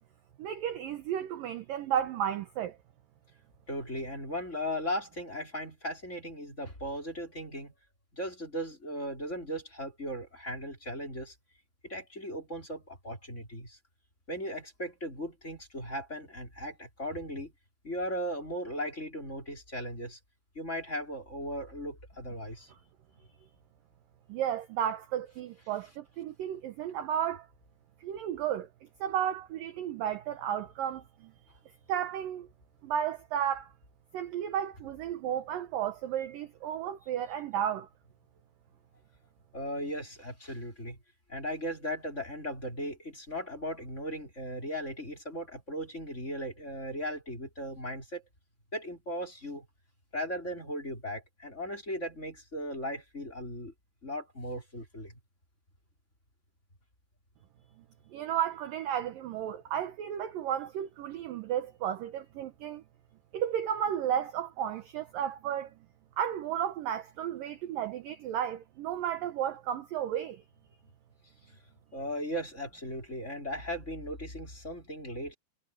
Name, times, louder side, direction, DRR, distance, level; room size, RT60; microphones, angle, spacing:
voice 1, 0.4-2.8 24.3-27.5 28.0-28.7 29.0-31.3 31.9-32.5 32.8-33.7 34.1-37.9 58.1-62.8 63.3-65.7 66.2-70.4, right 9 dB, 75° right, 2.1 m, -33 dB
voice 2, 3.7-7.7 8.1-11.3 11.8-13.8 14.3-17.5 17.8-20.2 20.5-22.7 39.5-41.0 41.3-48.2 48.7-49.7 50.1-53.7 54.0-55.1 71.9-75.3, equal, 15° left, 5.0 m, -37 dB
omnidirectional pair, 5.4 m